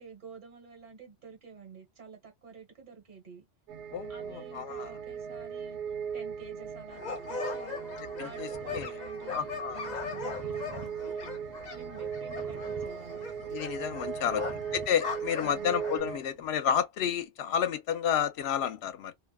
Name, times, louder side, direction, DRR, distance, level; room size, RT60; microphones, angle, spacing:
voice 1, 0.0-3.4 4.1-5.8 6.1-7.8 8.1-11.3 11.7-13.3 14.2-14.5 15.4-15.8, right 5 dB, 50° right, 1.4 m, -49 dB
sound 1, 3.7-16.2, right 7 dB, 85° right, 0.9 m, -38 dB
voice 2, 3.9-4.9 8.2-8.9 9.3-9.9 13.5-14.4 14.7-19.1, left 8 dB, 75° left, 0.8 m, -31 dB
sound 2, 6.9-16.0, left 5 dB, 45° left, 0.9 m, -40 dB
sound 3, 8.5-16.5, right 3 dB, 20° right, 0.8 m, -50 dB
2.5 x 2.3 x 2.2 m
omnidirectional pair, 1.1 m